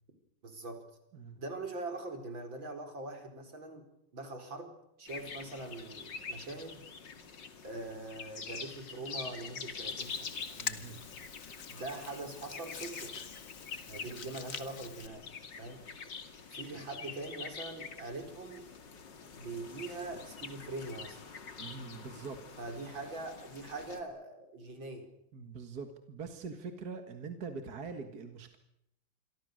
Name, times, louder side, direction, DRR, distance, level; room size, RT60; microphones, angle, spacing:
voice 1, 0.4-0.8 1.4-3.9 4.1-4.7 5.0-6.8 7.6-10.3 11.7-13.2 13.9-15.3 15.6-15.9 16.5-18.7 19.4-21.2 22.6-25.1, right 2 dB, 75° right, 6 dB, 5.2 m, -42 dB
sound 1, 5.1-24.0, left 5 dB, 65° left, 2.9 m, -46 dB
Hands, 10.0-15.1, left 6 dB, 45° left, 1.7 m, -45 dB
voice 2, 10.5-11.0 14.1-14.2 21.6-22.4 25.3-28.6, right 4 dB, 50° right, 7 dB, 2.4 m, -43 dB
28.0 x 23.0 x 6.6 m, 0.81 s
omnidirectional pair, 2.1 m